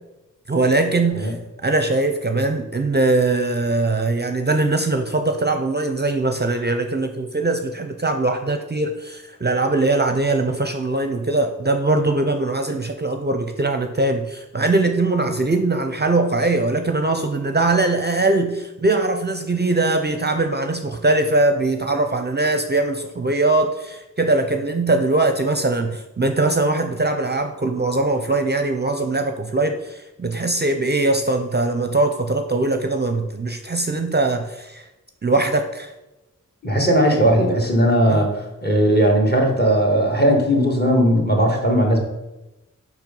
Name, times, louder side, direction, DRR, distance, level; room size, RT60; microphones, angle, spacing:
voice 1, 0.5-1.4 1.6-34.9 35.2-35.9 38.1-38.3, right 2 dB, 30° right, 6 dB, 0.5 m, -21 dB
voice 2, 36.6-42.0, equal, 30° left, 1 dB, 1.9 m, -18 dB
5.5 x 4.6 x 5.3 m, 1.0 s
cardioid pair, 40°, 32 cm